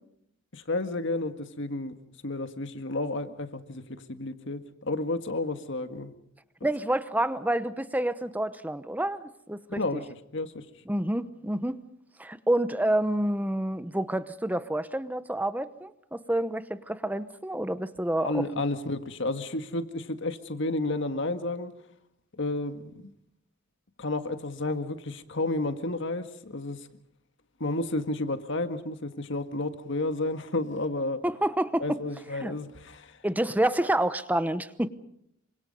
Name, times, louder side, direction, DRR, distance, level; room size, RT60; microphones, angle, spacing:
voice 1, 0.5-1.9 2.2-3.8 4.1-6.1 9.7-10.1 10.3-10.7 18.2-21.7 22.4-23.1 24.0-26.8 27.6-31.2 31.8-33.2, left 2 dB, 65° left, 8 dB, 1.8 m, -31 dB
voice 2, 6.6-10.0 10.9-11.8 12.2-18.4 31.2-32.0 32.4-32.6 33.2-34.9, right 1 dB, 10° right, 13 dB, 0.9 m, -28 dB
27.0 x 25.0 x 5.4 m, 0.73 s
head